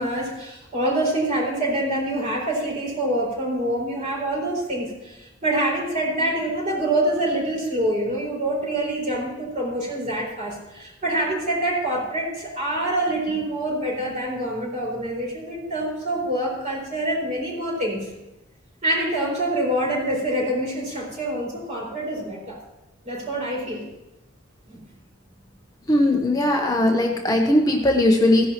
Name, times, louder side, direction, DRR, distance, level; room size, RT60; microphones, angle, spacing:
voice 1, 0.0-18.1 18.8-22.6 23.0-23.8 24.7-24.8, right 1 dB, 40° right, -4 dB, 5.1 m, -26 dB
voice 2, 25.9-28.5, left 1 dB, 20° left, 1 dB, 0.9 m, -19 dB
16.5 x 10.5 x 3.0 m, 1.0 s
head